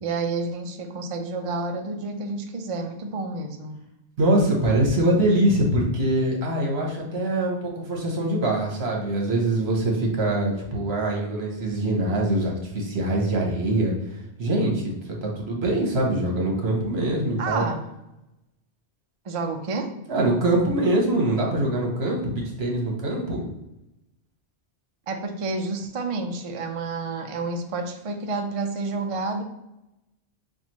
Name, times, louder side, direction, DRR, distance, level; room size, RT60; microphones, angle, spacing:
voice 1, 0.0-3.8 17.4-17.8 19.2-19.9 25.1-29.4, right 3 dB, 50° right, 5 dB, 0.4 m, -29 dB
voice 2, 4.2-17.6 20.1-23.4, right 1 dB, 70° right, 0 dB, 1.3 m, -23 dB
5.9 x 2.4 x 2.9 m, 0.92 s
omnidirectional pair, 1.1 m